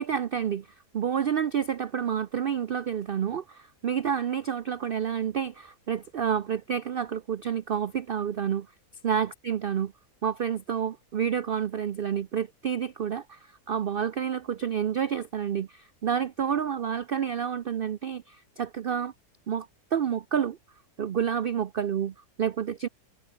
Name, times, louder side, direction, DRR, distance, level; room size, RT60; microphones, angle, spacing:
voice 1, 0.0-8.7 9.0-9.9 10.2-19.1 19.5-20.6 21.0-22.9, right 8 dB, 80° right, 0.5 m, -29 dB
omnidirectional pair, 1.7 m